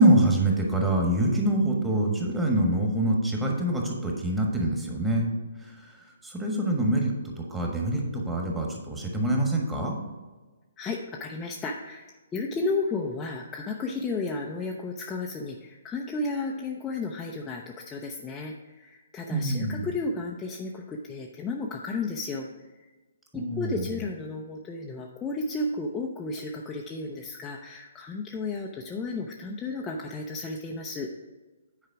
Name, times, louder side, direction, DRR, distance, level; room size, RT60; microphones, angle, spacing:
voice 1, 0.0-5.3 5.6-5.9 6.2-7.1 7.4-10.0 19.3-19.8 23.3-23.8, right 1 dB, 10° right, 0 dB, 1.4 m, -25 dB
voice 2, 10.8-22.5 22.8-22.9 23.3-31.1, left 3 dB, 15° left, -1 dB, 0.6 m, -33 dB
9.1 x 4.9 x 4.7 m, 1.3 s
figure-of-eight pair, 130°, 0 cm